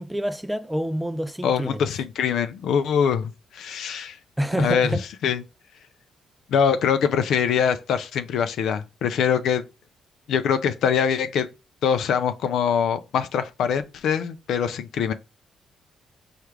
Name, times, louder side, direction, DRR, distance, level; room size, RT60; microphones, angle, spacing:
voice 1, 0.0-1.8 4.4-5.0, right 1 dB, 5° right, 0.3 m, -27 dB
voice 2, 1.4-4.2 4.6-5.4 6.5-9.6 10.3-11.5 11.8-15.1, left 7 dB, 75° left, 0.3 m, -23 dB
4.5 x 2.4 x 3.2 m
cardioid pair, 90°, 0 cm